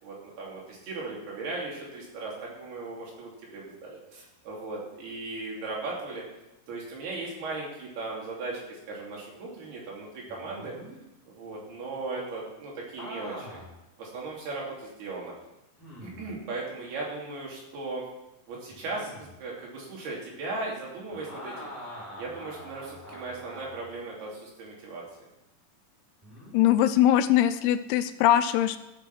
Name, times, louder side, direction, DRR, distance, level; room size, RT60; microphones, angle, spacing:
voice 1, 0.0-6.2 6.7-10.7 11.3-13.6 14.0-15.3 16.0-18.0 18.5-21.7 22.2-25.0, right 3 dB, 75° right, -3 dB, 5.0 m, -37 dB
sound 1, 10.3-11.0 13.0-13.8 14.4-14.5 15.8-16.3 18.7-19.3 21.1-24.0 26.2-26.6, equal, 5° left, 4.5 m, -44 dB
voice 2, 26.5-28.8, left 12 dB, 85° left, 12 dB, 2.6 m, -21 dB
15.0 x 7.0 x 6.0 m, 0.93 s
omnidirectional pair, 4.7 m